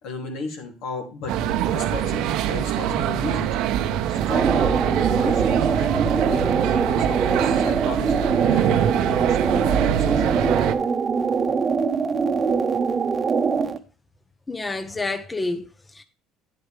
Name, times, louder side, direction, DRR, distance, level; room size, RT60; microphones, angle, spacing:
voice 1, 0.0-1.3 1.7-3.5 4.1-10.7, left 3 dB, 70° left, 2.6 m, -35 dB
sound 1, 1.3-10.7, right 10 dB, 70° right, 0.7 m, -24 dB
sound 2, 4.2-13.8, right 5 dB, 30° right, 0.9 m, -23 dB
voice 2, 14.5-16.0, left 3 dB, 15° left, 0.7 m, -29 dB
9.7 x 7.9 x 3.3 m
supercardioid pair, 80°, 0 cm